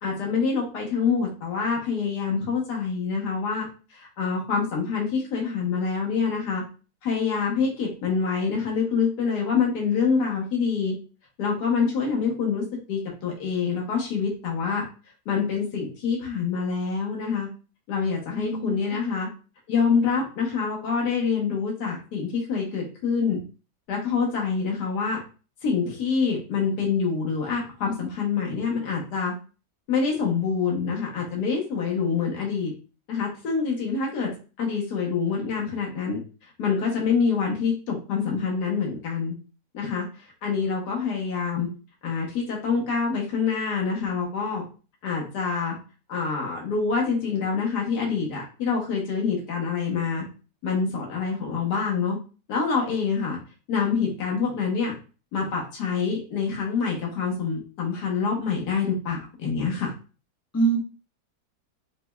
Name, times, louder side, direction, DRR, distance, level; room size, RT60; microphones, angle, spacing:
voice 1, 0.0-6.6 7.0-10.9 11.4-14.8 15.3-17.5 17.9-19.3 19.7-23.4 23.9-25.2 25.6-29.3 29.9-32.7 33.1-34.3 34.6-36.2 36.6-39.3 39.7-40.1 40.4-41.7 42.0-44.6 45.0-45.8 46.1-50.2 50.6-52.2 52.5-53.4 53.7-54.9 55.3-59.9, left 5 dB, 80° left, -2 dB, 1.5 m, -26 dB
voice 2, 18.3-18.7 60.5-60.8, right 5 dB, 15° left, -2 dB, 0.6 m, -24 dB
4.8 x 2.1 x 2.2 m, 0.35 s
omnidirectional pair, 1.7 m